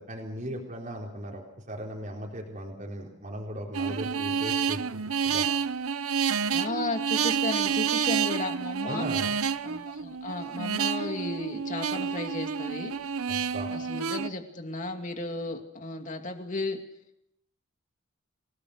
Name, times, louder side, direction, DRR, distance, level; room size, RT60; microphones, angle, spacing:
voice 1, 0.0-5.5 8.8-9.3 13.3-13.7, right 1 dB, 35° right, -1 dB, 4.1 m, -37 dB
sound 1, 3.7-14.3, right 7 dB, 85° right, 0.8 m, -29 dB
voice 2, 6.5-9.1 9.6-13.0 13.7-16.8, left 2 dB, 35° left, 4 dB, 2.6 m, -34 dB
28.0 x 19.0 x 6.6 m, 0.80 s
head